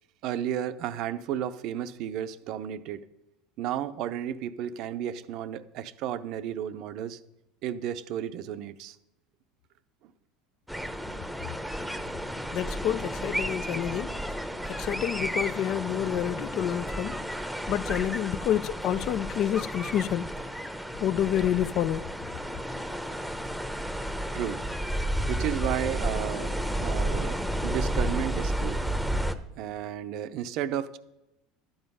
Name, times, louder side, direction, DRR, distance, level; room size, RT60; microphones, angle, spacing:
voice 1, 0.2-3.0 3.6-7.2 7.6-9.0 24.3-24.6 25.3-26.5 26.8-28.9 29.6-31.0, right 10 dB, 60° right, 0.6 m, -33 dB
sound 1, 10.7-29.3, right 1 dB, ahead, 0.8 m, -32 dB
voice 2, 12.5-14.4 14.7-17.3 17.7-20.3 21.0-22.1, left 11 dB, 55° left, 0.4 m, -28 dB
12.0 x 7.9 x 5.4 m
supercardioid pair, 95°, 0 cm